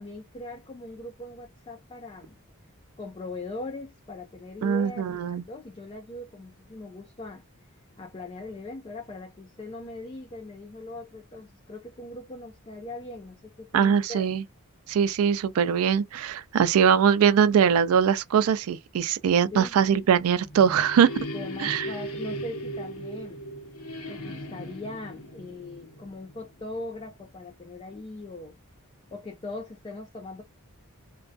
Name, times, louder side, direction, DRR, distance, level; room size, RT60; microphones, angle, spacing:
voice 1, 0.0-2.4 3.0-7.4 8.0-14.3 19.5-19.7 21.3-23.4 24.1-28.6 29.1-30.4, left 2 dB, 25° left, 0.4 m, -40 dB
voice 2, 4.6-5.4 13.7-14.4 14.9-21.1 21.6-21.9, right 7 dB, 65° right, 0.3 m, -22 dB
sound 1, 20.4-26.8, equal, 75° left, 0.8 m, -38 dB
2.3 x 2.2 x 2.5 m
head